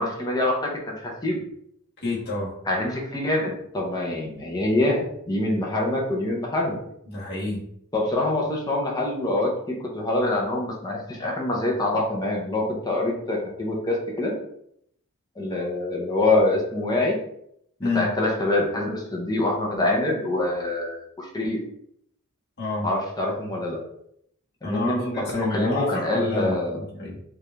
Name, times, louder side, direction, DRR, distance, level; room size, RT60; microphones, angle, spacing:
voice 1, 0.0-1.4 2.7-6.8 7.9-14.3 15.4-17.1 17.8-21.6 22.8-23.8 24.6-26.8, left 2 dB, 15° left, -2 dB, 0.7 m, -25 dB
voice 2, 2.0-2.5 7.1-7.7 17.8-18.1 22.6-22.9 24.6-27.2, left 2 dB, 45° left, -5 dB, 1.3 m, -29 dB
4.8 x 2.5 x 3.3 m, 0.72 s
head